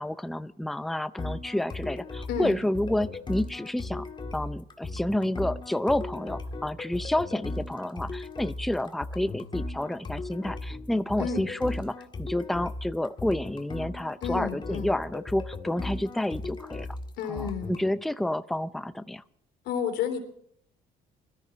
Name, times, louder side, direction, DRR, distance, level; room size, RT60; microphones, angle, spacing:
voice 1, 0.0-4.1 4.3-16.9 17.3-19.2, left 1 dB, ahead, 13 dB, 0.5 m, -29 dB
sound 1, 1.2-17.9, left 2 dB, 25° left, 1.6 m, -37 dB
voice 2, 14.2-14.9 17.2-17.7 19.6-20.2, left 7 dB, 80° left, 4 dB, 3.2 m, -31 dB
21.5 x 13.5 x 4.3 m, 0.68 s
cardioid pair, 110°, 17 cm